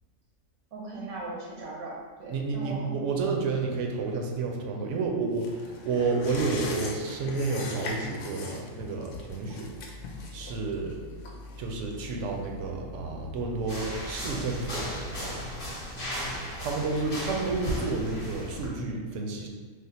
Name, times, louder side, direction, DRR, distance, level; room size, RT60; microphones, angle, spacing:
voice 1, 0.7-1.9 2.2-3.0, right 2 dB, 85° right, -4 dB, 1.2 m, -38 dB
voice 2, 2.3-9.7 10.3-11.0 11.6-15.4 16.6-19.5, right 4 dB, 70° right, 1 dB, 0.8 m, -30 dB
sound 1, 5.4-12.4 12.7-12.8, left 3 dB, 70° left, 0.9 m, -39 dB
sound 2, 9.6-15.3, left 1 dB, 25° right, 0.5 m, -45 dB
sound 3, 13.7-18.7, equal, 25° left, 0.9 m, -35 dB
3.3 x 2.0 x 4.2 m, 1.5 s
omnidirectional pair, 1.4 m